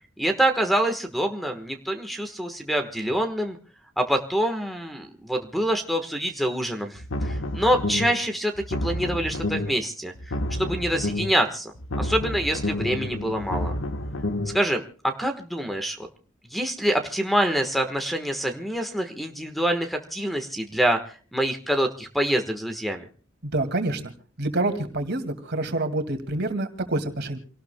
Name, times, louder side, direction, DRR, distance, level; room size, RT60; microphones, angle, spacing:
voice 1, 0.2-3.6 4.0-13.7 14.5-16.0 16.5-21.0 21.3-23.1, right 1 dB, ahead, 6 dB, 1.3 m, -26 dB
sound 1, 6.9-8.2 8.5-9.8 10.1-11.4 11.7-14.6, left 1 dB, 70° left, 1.3 m, -29 dB
voice 2, 23.4-24.1 24.4-27.4, right 2 dB, 55° right, 7 dB, 2.2 m, -27 dB
28.0 x 18.0 x 2.2 m, 0.41 s
head